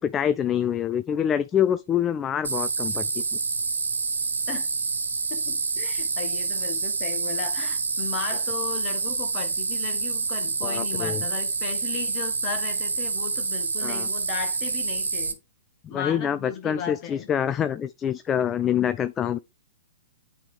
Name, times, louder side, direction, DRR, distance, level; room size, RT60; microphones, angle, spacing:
voice 1, 0.0-3.1 10.6-11.2 13.8-14.1 15.8-19.4, left 9 dB, 20° left, 0.3 m, -26 dB
sound 1, 2.4-15.3, right 4 dB, 85° right, 0.8 m, -27 dB
voice 2, 5.3-15.4 15.9-17.3, left 7 dB, 35° left, 1.5 m, -36 dB
8.8 x 3.5 x 3.4 m
hypercardioid pair, 115°, 0 cm